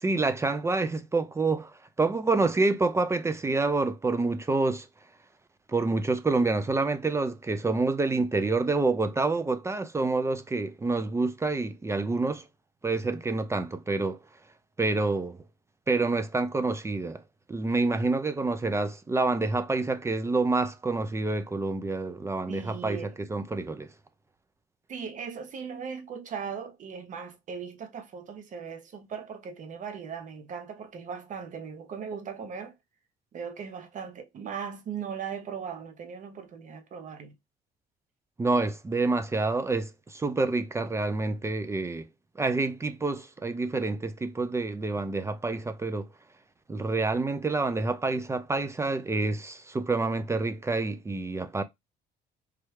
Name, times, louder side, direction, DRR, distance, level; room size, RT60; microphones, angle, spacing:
voice 1, 0.0-1.7 2.0-4.9 5.7-12.4 12.8-14.2 14.8-15.4 15.9-17.2 17.5-23.0 23.3-23.9 38.4-42.1 42.4-46.1 46.7-51.6, right 3 dB, 15° right, 0.4 m, -27 dB
voice 2, 22.5-23.2 24.9-32.7 33.3-37.3, right 6 dB, 50° right, 0.8 m, -38 dB
3.2 x 2.3 x 3.1 m
cardioid pair, 110°, 17 cm